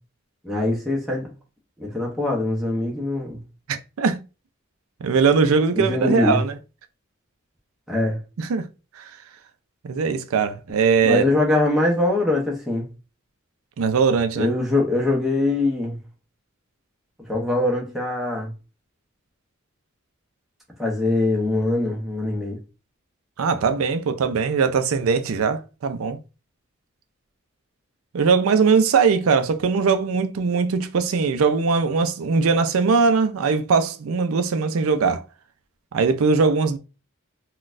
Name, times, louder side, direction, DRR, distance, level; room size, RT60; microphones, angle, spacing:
voice 1, 0.4-1.3 1.8-3.4 5.7-6.4 7.9-8.2 11.0-12.9 14.4-16.0 17.3-18.5 20.8-22.6, left 2 dB, ahead, 0.8 m, -22 dB
voice 2, 3.7-4.2 5.0-6.5 8.4-8.7 9.0-9.1 9.8-11.2 13.8-14.5 23.4-26.2 28.1-35.2 35.9-36.8, right 5 dB, 85° right, 0.4 m, -20 dB
3.8 x 2.3 x 2.5 m
head